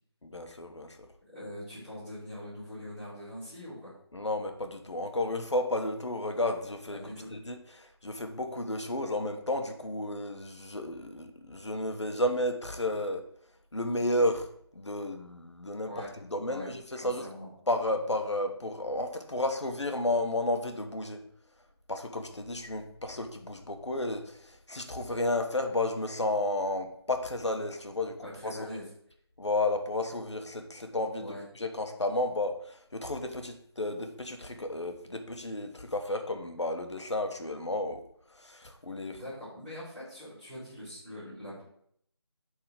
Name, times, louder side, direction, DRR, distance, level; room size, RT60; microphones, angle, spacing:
voice 1, 0.2-1.0 4.1-13.2 13.7-14.5 14.7-16.0 16.3-17.2 17.7-21.2 21.9-28.1 28.4-28.6 29.4-38.0 38.4-39.2, left 1 dB, 85° left, 5 dB, 1.3 m, -32 dB
voice 2, 1.3-3.9 6.9-7.3 15.9-16.1 16.4-16.7 17.0-17.5 28.2-28.9 31.2-31.4 39.1-41.6, left 1 dB, 5° left, -12 dB, 3.8 m, -42 dB
9.6 x 3.9 x 5.0 m, 0.68 s
figure-of-eight pair, 165°, 14 cm